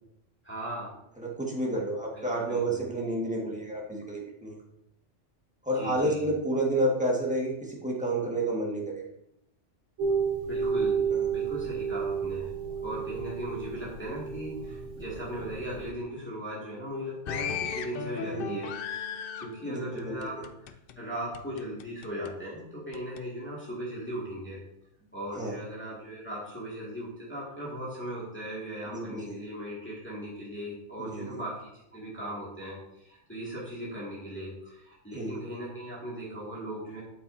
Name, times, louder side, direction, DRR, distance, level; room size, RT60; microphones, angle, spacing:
voice 1, 0.4-0.9 2.1-2.8 5.7-6.3 10.5-12.5 12.8-19.0 19.4-24.6 25.1-37.0, equal, 10° left, -7 dB, 2.2 m, -38 dB
voice 2, 1.2-4.6 5.6-9.0 11.1-11.2 18.3-18.6 19.6-20.1 25.4-25.6 28.9-29.4 31.0-31.4 35.1-35.4, right 1 dB, 5° right, -3 dB, 1.6 m, -30 dB
sound 1, 10.0-15.9, right 6 dB, 80° right, 1.4 m, -31 dB
sound 2, 17.3-21.0 21.3-22.3 22.9-23.2, left 7 dB, 60° left, 0.6 m, -37 dB
8.7 x 8.2 x 2.7 m, 0.81 s
omnidirectional pair, 1.2 m